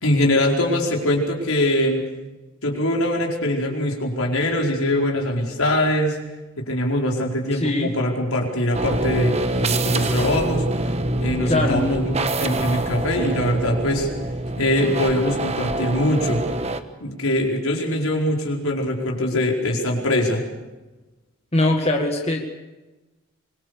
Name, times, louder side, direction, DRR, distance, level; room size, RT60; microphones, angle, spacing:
voice 1, 0.0-2.0 2.6-6.2 6.6-10.7 11.2-14.1 14.6-16.4 17.0-20.4, left 1 dB, 80° left, 0 dB, 4.9 m, -22 dB
voice 2, 7.5-7.9 11.5-11.8 21.5-22.4, left 1 dB, 30° left, 2 dB, 1.9 m, -21 dB
sound 1, 8.7-16.8, right 2 dB, 30° right, 1.2 m, -25 dB
25.0 x 23.0 x 6.7 m, 1.1 s
head